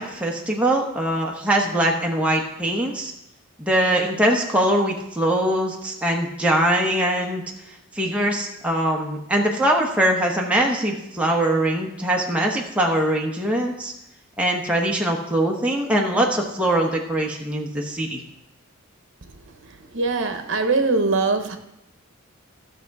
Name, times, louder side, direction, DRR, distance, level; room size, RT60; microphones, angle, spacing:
voice 1, 0.0-3.1 3.6-7.4 7.9-13.9 14.4-18.2, right 1 dB, 5° right, 1.1 m, -22 dB
voice 2, 19.9-21.6, right 3 dB, 55° right, 1.0 m, -21 dB
14.0 x 6.6 x 4.8 m
head